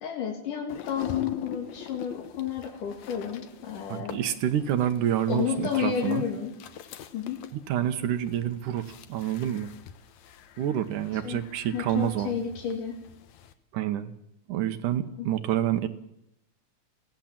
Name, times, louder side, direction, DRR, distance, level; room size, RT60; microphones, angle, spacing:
voice 1, 0.0-4.2 5.3-6.6 7.1-7.5 11.2-11.4 11.7-13.0 15.2-15.3, left 8 dB, 90° left, 1 dB, 3.9 m, -31 dB
sound 1, 0.7-13.5, left 8 dB, 70° left, 2.2 m, -44 dB
voice 2, 3.9-6.2 7.5-9.7 10.6-12.4 13.7-14.1 14.5-15.9, right 11 dB, 90° right, 9 dB, 2.7 m, -28 dB
24.0 x 16.5 x 7.5 m, 0.82 s
omnidirectional pair, 3.6 m